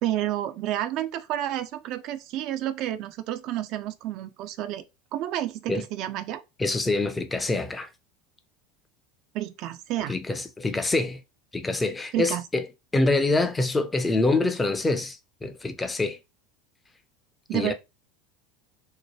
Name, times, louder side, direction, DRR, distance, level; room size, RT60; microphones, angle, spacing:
voice 1, 0.0-4.8 5.1-6.4 9.3-10.2 12.1-12.4 17.5-17.7, right 13 dB, 50° right, 0.3 m, -30 dB
voice 2, 6.6-7.9 10.1-11.2 11.5-12.7 12.9-16.2 17.5-17.7, left 2 dB, 15° left, 0.5 m, -25 dB
2.9 x 2.1 x 3.0 m
figure-of-eight pair, 75°, 0 cm